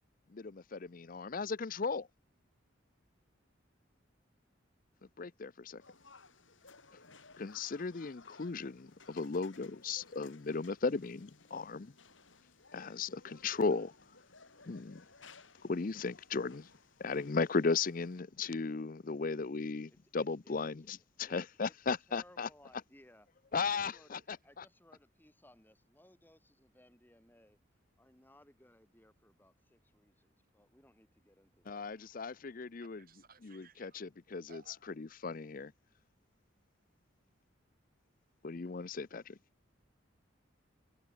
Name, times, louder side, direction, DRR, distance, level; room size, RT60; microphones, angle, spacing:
voice 1, 0.3-2.1 5.2-5.8 7.4-11.9 12.7-13.9 14.7-15.0 15.6-16.7 17.0-22.5 23.5-24.6 31.7-33.0 33.4-34.6 35.0-35.7 38.4-39.3, left 4 dB, 45° left, 0.5 m, -36 dB
sound 1, 5.8-18.2, left 4 dB, 75° left, 5.2 m, -60 dB
voice 2, 19.9-20.9 21.2-21.7 22.1-23.3 23.7-24.2 24.4-27.6 28.0-32.1, left 1 dB, 10° left, 4.5 m, -63 dB
voice 3, 32.8-34.0 34.5-34.8, right 4 dB, 45° right, 7.4 m, -60 dB
head